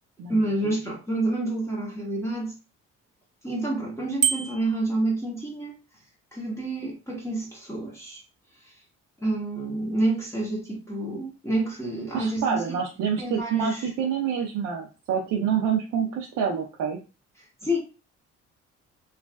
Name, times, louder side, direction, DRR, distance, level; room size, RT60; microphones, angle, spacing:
voice 1, 0.3-2.5 3.4-5.7 6.3-8.2 8.6-8.7 9.2-12.6 13.2-13.9 17.6-17.8, right 2 dB, 10° left, 1.0 m, -28 dB
Bicycle bell, 4.2-4.8, right 8 dB, 25° right, 0.3 m, -25 dB
voice 2, 12.1-17.0, right 7 dB, 75° right, 0.6 m, -27 dB
3.1 x 2.4 x 2.3 m
cardioid pair, 85°, 29 cm